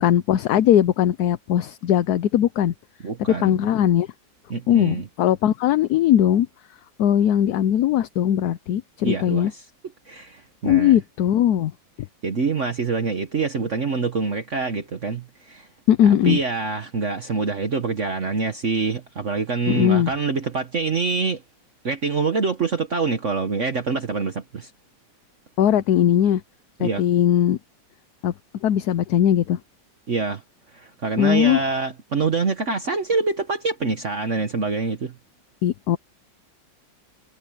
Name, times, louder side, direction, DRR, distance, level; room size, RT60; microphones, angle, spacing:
voice 1, 0.0-2.7 3.4-4.1 4.7-6.5 7.0-9.5 10.6-11.7 15.9-16.4 19.7-20.1 25.6-26.4 26.8-27.6 28.2-28.3 28.6-29.6 31.2-31.6 35.6-36.0, left 10 dB, 65° left, 1.1 m, -19 dB
voice 2, 3.0-3.6 4.5-5.1 9.0-9.6 10.1-11.0 12.2-15.7 16.0-21.4 21.8-24.7 26.8-27.0 30.1-30.4 30.7-35.1, right 4 dB, 45° right, 1.5 m, -25 dB
omnidirectional pair, 2.0 m